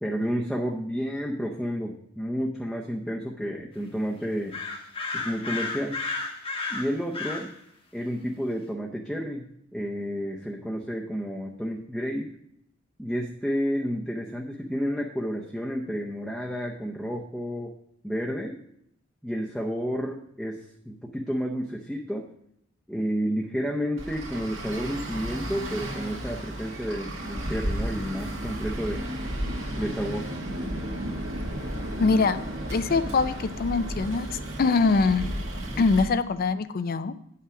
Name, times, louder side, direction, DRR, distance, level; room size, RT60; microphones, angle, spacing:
voice 1, 0.0-4.6 5.1-6.0 6.7-7.5 7.9-9.5 9.7-12.3 13.0-17.7 18.0-18.6 19.2-22.3 22.9-29.0 29.8-30.3 35.6-35.9, equal, ahead, -1 dB, 0.6 m, -31 dB
sound 1, 4.5-7.5, left 3 dB, 30° left, 1.0 m, -32 dB
Traffic noise roadway noise, 24.0-36.1, right 1 dB, 80° right, 1.8 m, -33 dB
voice 2, 32.0-32.4 32.7-35.3 35.8-37.2, left 4 dB, 50° left, 12 dB, 0.4 m, -23 dB
8.8 x 5.7 x 4.7 m, 0.74 s
head